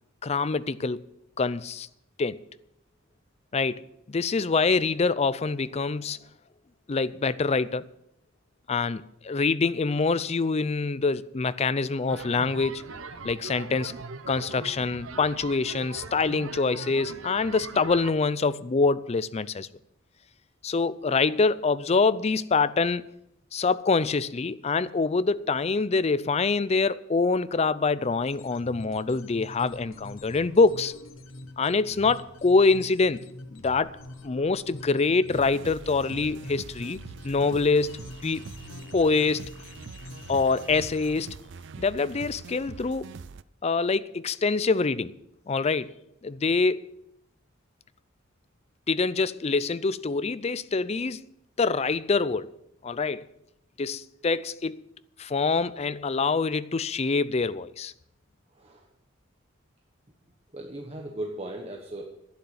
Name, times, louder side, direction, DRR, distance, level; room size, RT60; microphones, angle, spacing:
voice 1, 0.2-1.0 1.4-1.9 2.2-2.4 3.5-6.2 6.9-7.8 8.7-12.9 13.2-13.9 14.3-19.7 20.6-23.0 23.5-30.9 31.6-33.2 33.5-34.0 34.2-38.4 38.9-39.5 40.3-41.4 41.8-43.1 43.6-45.1 45.5-45.9 46.2-46.8 48.9-51.2 51.6-52.5 52.8-53.2 53.8-54.8 55.2-57.9, left 4 dB, 30° left, 0.4 m, -25 dB
sound 1, 12.1-18.1, right 4 dB, 85° right, 0.9 m, -40 dB
sound 2, 28.2-41.2, left 2 dB, 85° left, 1.1 m, -45 dB
sound 3, 35.3-43.4, right 5 dB, 60° right, 0.4 m, -44 dB
voice 2, 58.5-58.9 60.5-62.1, right 1 dB, 30° right, 1.3 m, -37 dB
11.5 x 9.4 x 7.2 m
head